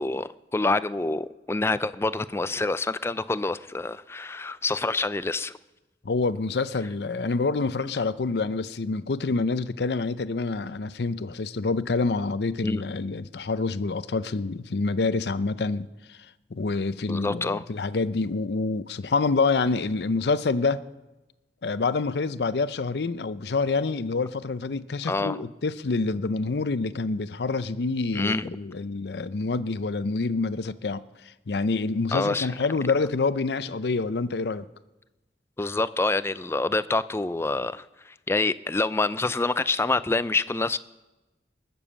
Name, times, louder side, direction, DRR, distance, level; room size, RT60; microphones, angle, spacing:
voice 1, 0.0-5.6 12.6-12.8 17.1-17.6 25.1-25.4 28.1-28.4 32.1-32.5 35.6-40.8, left 3 dB, 15° left, 0.4 m, -27 dB
voice 2, 6.0-16.2 16.5-20.8 21.6-31.0 31.5-34.7, left 3 dB, 65° left, 0.6 m, -27 dB
20.5 x 7.0 x 7.4 m
head